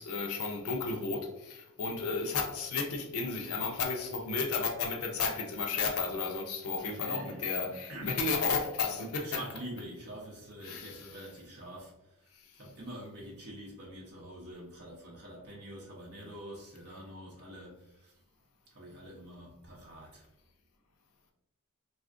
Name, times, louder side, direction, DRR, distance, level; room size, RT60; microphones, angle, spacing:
voice 1, 0.0-9.4 10.6-11.3 12.4-12.5, left 4 dB, 80° left, 2 dB, 0.5 m, -33 dB
voice 2, 6.8-8.3 9.2-12.3 12.6-18.2 18.7-20.3, right 1 dB, 50° right, -5 dB, 0.6 m, -46 dB
3.3 x 2.4 x 2.5 m, 0.90 s
head